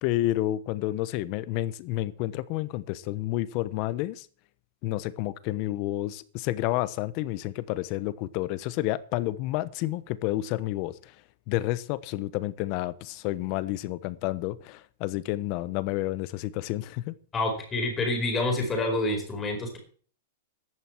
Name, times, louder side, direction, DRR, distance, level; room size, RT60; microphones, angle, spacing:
voice 1, 0.0-4.3 4.8-11.1 11.5-17.1, left 16 dB, 35° left, 15 dB, 1.0 m, -30 dB
voice 2, 17.3-19.8, left 2 dB, 15° left, 2 dB, 4.7 m, -27 dB
14.5 x 11.0 x 4.6 m, 0.43 s
supercardioid pair, 165°, 0 cm